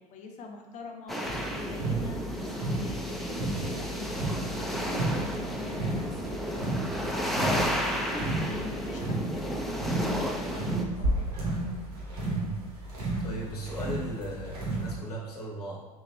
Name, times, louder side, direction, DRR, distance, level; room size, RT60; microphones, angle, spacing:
voice 1, 0.0-5.9 7.1-11.4, left 3 dB, 40° left, 3 dB, 0.7 m, -44 dB
sound 1, 1.1-10.8, equal, ahead, 0.4 m, -33 dB
sound 2, 1.2-15.0, right 2 dB, 80° right, 1.2 m, -33 dB
voice 2, 12.2-12.6 13.2-15.9, right 2 dB, 85° left, -3 dB, 0.9 m, -37 dB
3.8 x 2.9 x 3.0 m, 1.1 s
hypercardioid pair, 80°, 19 cm